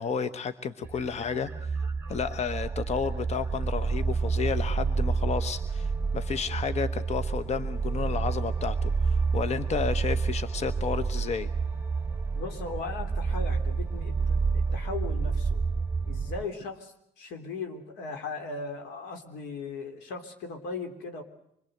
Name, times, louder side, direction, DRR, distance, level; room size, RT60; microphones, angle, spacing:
voice 1, 0.0-1.8 2.1-11.5, left 6 dB, 40° left, 11 dB, 1.1 m, -32 dB
sound 1, 0.8-16.4, right 4 dB, 15° right, 1.5 m, -29 dB
voice 2, 12.4-15.6 16.1-21.2, left 4 dB, 90° left, 6 dB, 3.5 m, -38 dB
26.0 x 21.5 x 8.0 m, 0.76 s
cardioid pair, 110°, 17 cm